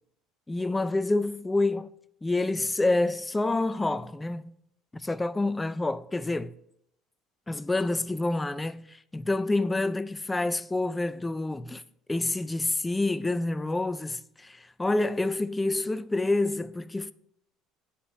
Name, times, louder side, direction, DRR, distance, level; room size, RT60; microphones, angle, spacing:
voice 1, 0.5-1.9 2.2-4.5 4.9-6.5 7.5-11.8 12.1-17.1, left 2 dB, 10° left, 0.4 m, -28 dB
8.5 x 7.3 x 6.1 m
cardioid pair, 160°, 0 cm